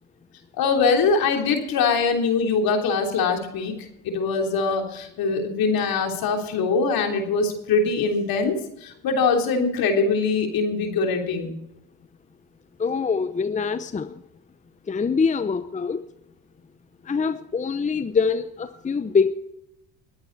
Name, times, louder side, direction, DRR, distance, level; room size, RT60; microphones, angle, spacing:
voice 1, 0.6-3.8 4.0-11.5, left 4 dB, 60° left, 3 dB, 3.5 m, -23 dB
voice 2, 12.8-14.2 14.9-16.0 17.0-19.3, left 5 dB, 20° left, 12 dB, 0.7 m, -24 dB
21.5 x 8.8 x 4.1 m, 0.81 s
supercardioid pair, 75°, 39 cm